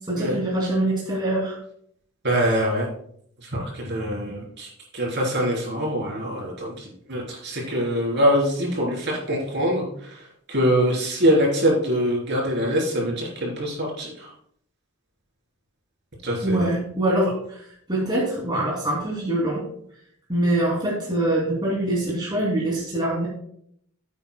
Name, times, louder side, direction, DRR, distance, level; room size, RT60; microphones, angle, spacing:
voice 1, 0.1-1.6 16.4-17.6 17.9-19.6 20.3-23.3, right 1 dB, 20° right, -4 dB, 2.8 m, -24 dB
voice 2, 2.2-2.9 3.4-10.2 10.5-14.3 16.2-16.7, equal, 50° right, -3 dB, 3.7 m, -24 dB
15.5 x 8.6 x 2.3 m, 0.66 s
head